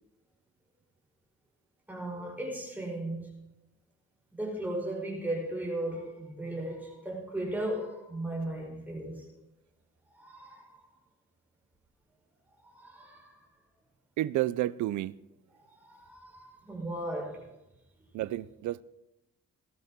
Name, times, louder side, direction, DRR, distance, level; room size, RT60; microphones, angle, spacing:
voice 1, 1.9-3.3 4.3-9.2 10.2-10.8 12.6-13.5 15.7-17.5, right 1 dB, 5° right, 5.3 m, -36 dB
voice 2, 14.2-15.1 18.1-18.8, right 15 dB, 75° right, 0.5 m, -30 dB
19.5 x 12.0 x 3.7 m
cardioid pair, 140°, 30 cm